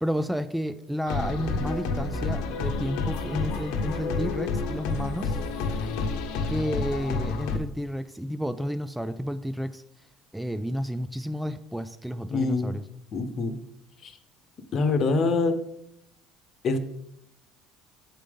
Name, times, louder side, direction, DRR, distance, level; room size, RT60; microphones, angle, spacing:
voice 1, 0.0-5.4 6.5-9.8 10.3-12.8, equal, 5° right, 12 dB, 0.3 m, -31 dB
sound 1, 1.1-7.6, left 4 dB, 75° left, 0.9 m, -29 dB
voice 2, 12.3-12.7 13.1-13.5 14.0-14.1 14.7-15.5 16.6-16.8, left 3 dB, 50° left, 9 dB, 0.9 m, -24 dB
7.6 x 5.0 x 3.5 m, 0.82 s
supercardioid pair, 90°, 0 cm